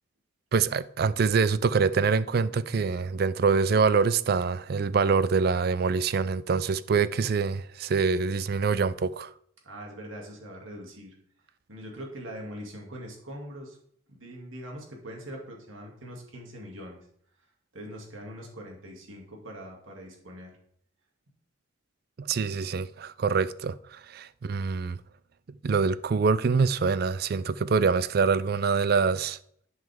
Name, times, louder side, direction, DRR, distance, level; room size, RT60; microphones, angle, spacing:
voice 1, 0.5-9.3 22.2-25.0 25.6-29.4, right 5 dB, 50° right, 0.4 m, -25 dB
voice 2, 9.6-11.2 11.7-13.8 14.1-17.0 17.7-20.5, equal, 80° right, 2.3 m, -42 dB
11.0 x 5.6 x 3.5 m
head